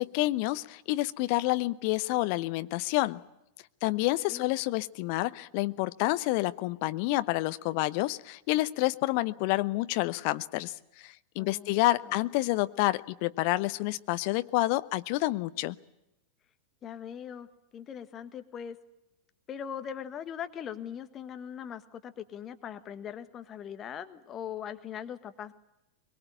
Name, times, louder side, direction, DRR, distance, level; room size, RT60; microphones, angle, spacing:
voice 1, 0.0-3.2 3.8-15.8, left 19 dB, 45° left, 13 dB, 0.9 m, -29 dB
voice 2, 11.4-12.2 16.8-17.5 17.7-18.8 19.5-25.5, left 8 dB, 25° left, 9 dB, 1.5 m, -40 dB
22.5 x 22.5 x 9.1 m, 0.88 s
figure-of-eight pair, 90°, 0 cm